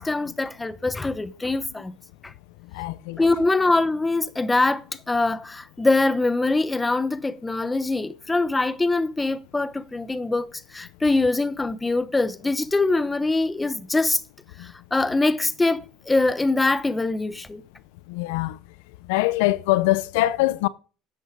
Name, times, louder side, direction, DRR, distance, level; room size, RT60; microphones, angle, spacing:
voice 1, 0.0-1.9 2.2-2.3 3.2-14.2 14.6-17.6, left 2 dB, 15° left, 1.0 m, -23 dB
voice 2, 2.7-3.2 18.1-18.6 19.1-20.7, left 17 dB, 90° left, 0.5 m, -23 dB
13.0 x 8.2 x 4.7 m
supercardioid pair, 110°, 0 cm